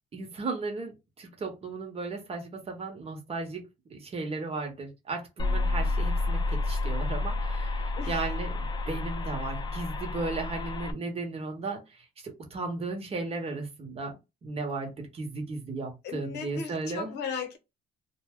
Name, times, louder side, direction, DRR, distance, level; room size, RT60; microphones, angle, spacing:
voice 1, 0.1-3.6 3.9-17.1, right 3 dB, 35° right, 0.9 m, -35 dB
sound 1, 5.4-10.9, left 2 dB, 25° left, 0.4 m, -30 dB
voice 2, 16.0-17.6, left 6 dB, 80° left, 0.8 m, -36 dB
2.2 x 2.0 x 3.5 m
cardioid pair, 110°, 17 cm